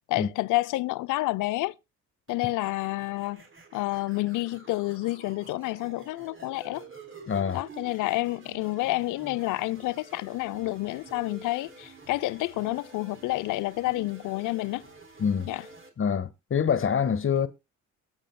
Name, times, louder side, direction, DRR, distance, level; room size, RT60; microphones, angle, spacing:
voice 1, 0.1-1.7 2.3-3.4 3.7-6.8 7.5-14.8 15.5-15.6, left 19 dB, 90° left, 0.6 m, -29 dB
sound 1, 2.3-15.9, right 4 dB, 45° right, 3.9 m, -49 dB
voice 2, 7.3-7.6 15.2-15.5 16.0-17.5, left 7 dB, 45° left, 1.5 m, -25 dB
22.5 x 8.3 x 2.2 m
cardioid pair, 90°, 30 cm